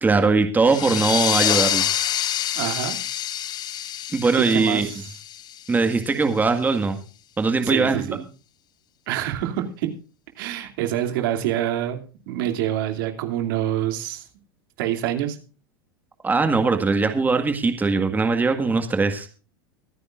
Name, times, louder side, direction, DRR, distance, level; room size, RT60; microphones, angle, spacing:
voice 1, 0.0-1.8 4.1-4.9 5.7-7.0 7.4-8.0 16.2-19.3, right 4 dB, 15° right, 6 dB, 1.8 m, -20 dB
sound 1, 0.7-6.0, left 11 dB, 35° left, 0.8 m, -26 dB
voice 2, 2.5-3.0 4.4-5.1 7.6-8.2 9.1-9.9 10.4-12.0 12.3-14.3 14.8-15.4, right 12 dB, 70° right, 5 dB, 2.8 m, -26 dB
24.5 x 9.8 x 2.5 m, 0.35 s
hypercardioid pair, 105°, 12 cm